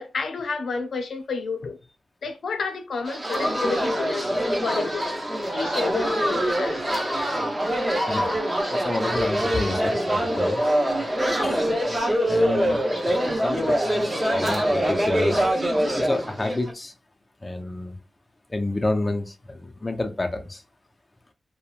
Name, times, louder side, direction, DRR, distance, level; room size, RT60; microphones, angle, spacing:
voice 1, 0.0-1.8 2.2-5.2 5.5-6.9, left 4 dB, 75° left, 0.5 m, -30 dB
sound 1, 3.1-16.7, equal, 15° right, 0.8 m, -24 dB
voice 2, 8.7-10.6 11.4-11.7 12.3-12.8 13.4-13.7 14.3-15.5 15.9-16.9 17.4-17.9 18.5-20.6, left 2 dB, 20° left, 0.4 m, -29 dB
2.9 x 2.1 x 2.3 m
wide cardioid pair, 125°, 0 cm